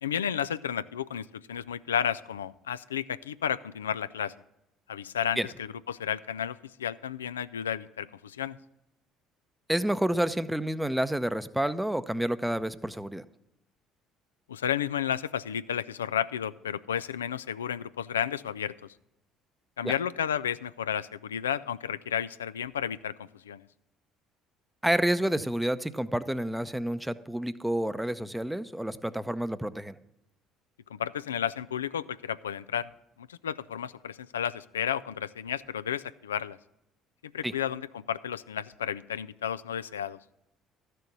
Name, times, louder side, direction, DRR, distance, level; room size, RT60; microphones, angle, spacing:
voice 1, 0.0-4.3 4.9-8.6 14.5-18.7 19.8-23.6 31.0-32.9 33.2-36.6 37.3-40.2, left 9 dB, 90° left, 15 dB, 0.3 m, -32 dB
voice 2, 9.7-13.2 19.8-20.0 24.8-29.9 37.4-37.5, right 1 dB, 5° right, 13 dB, 0.7 m, -29 dB
13.0 x 6.7 x 6.0 m, 0.86 s
hypercardioid pair, 60°, 0 cm